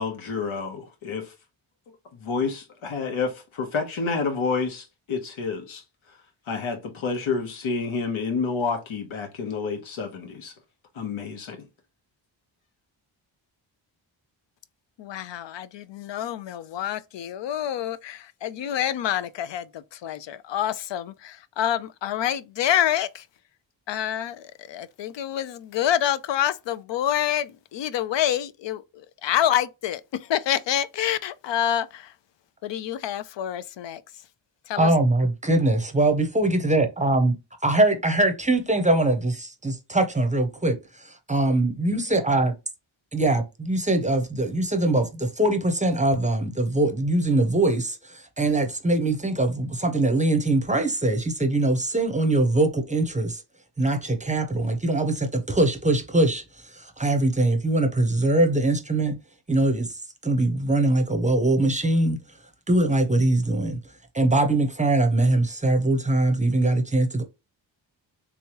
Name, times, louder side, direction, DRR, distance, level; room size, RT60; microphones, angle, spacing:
voice 1, 0.0-1.3 2.1-5.8 6.5-10.5 10.9-11.6, left 4 dB, 80° left, 1.0 m, -29 dB
voice 2, 15.0-23.2 23.9-32.1 32.6-34.0 34.7-34.9, left 10 dB, 65° left, 0.5 m, -27 dB
voice 3, 34.8-37.4 37.6-40.8 41.0-42.5 43.1-53.4 53.8-56.4 56.7-59.2 59.5-59.9 60.2-62.2 62.7-63.8 64.1-67.2, right 2 dB, 15° right, 0.6 m, -22 dB
3.5 x 3.1 x 2.9 m
wide cardioid pair, 125°, 48 cm